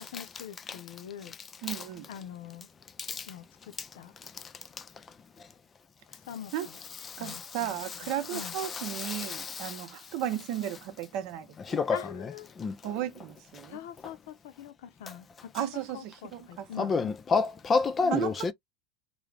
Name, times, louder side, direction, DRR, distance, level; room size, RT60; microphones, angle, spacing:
voice 1, 0.0-1.3 2.1-2.7 3.3-4.1 6.1-6.8 7.2-8.6 11.9-12.7 13.7-15.7 15.9-17.0 18.0-18.1, left 9 dB, 75° left, 0.6 m, -44 dB
voice 2, 1.6-2.0 6.5-6.7 7.2-11.5 12.8-13.8 15.5-17.1 18.1-18.3, right 11 dB, 60° right, 0.7 m, -35 dB
voice 3, 7.0-9.9 11.6-12.9 15.1-15.2 16.8-18.5, left 4 dB, 25° left, 0.4 m, -31 dB
2.4 x 2.0 x 3.3 m
hypercardioid pair, 105°, 0 cm